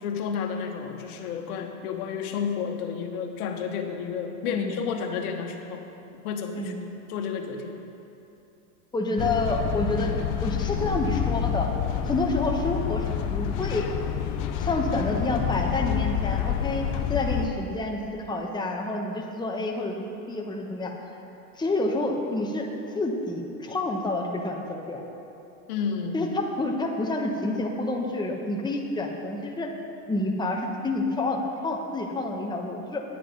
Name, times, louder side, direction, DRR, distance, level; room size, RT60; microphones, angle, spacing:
voice 1, 0.0-5.8 6.1-7.7 25.7-26.3, left 6 dB, 70° left, 4 dB, 1.4 m, -31 dB
voice 2, 8.9-10.1 10.4-11.7 12.0-13.9 14.6-16.8 17.1-20.9 21.6-22.7 22.9-25.0 26.1-29.7 30.1-33.0, left 2 dB, 10° left, 0 dB, 1.1 m, -28 dB
sound 1, 9.2-17.5, left 9 dB, 40° left, 0.7 m, -28 dB
10.0 x 9.0 x 5.2 m, 2.8 s
hypercardioid pair, 115°, 46 cm